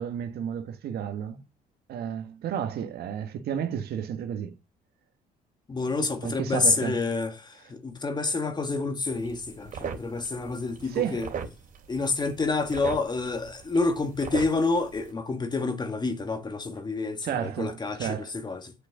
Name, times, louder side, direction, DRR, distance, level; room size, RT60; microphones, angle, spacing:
voice 1, 0.0-1.4 1.9-4.6 6.0-7.0 10.8-11.3 17.2-18.3, right 9 dB, 70° right, 1.7 m, -32 dB
voice 2, 5.7-11.3 11.9-18.7, left 3 dB, 25° left, 1.9 m, -28 dB
sound 1, 9.1-15.1, right 6 dB, 50° right, 3.0 m, -40 dB
8.9 x 8.2 x 7.3 m
cardioid pair, 110°, 17 cm